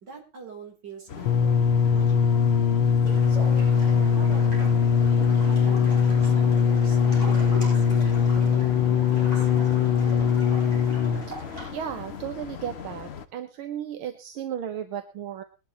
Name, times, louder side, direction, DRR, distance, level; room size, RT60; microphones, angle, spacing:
voice 1, 0.0-1.6 1.9-2.5 3.3-3.7 4.1-9.5, right 4 dB, 55° right, 1 dB, 4.5 m, -44 dB
sound 1, 1.1-13.3, left 7 dB, 50° left, 0.8 m, -38 dB
sound 2, 1.3-11.4 12.2-12.3, left 6 dB, 80° left, 1.9 m, -21 dB
sound 3, 3.0-11.7, equal, 15° right, 7.9 m, -41 dB
voice 2, 11.7-15.4, right 9 dB, 80° right, 8 dB, 1.8 m, -34 dB
21.0 x 11.5 x 3.1 m, 0.29 s
omnidirectional pair, 2.3 m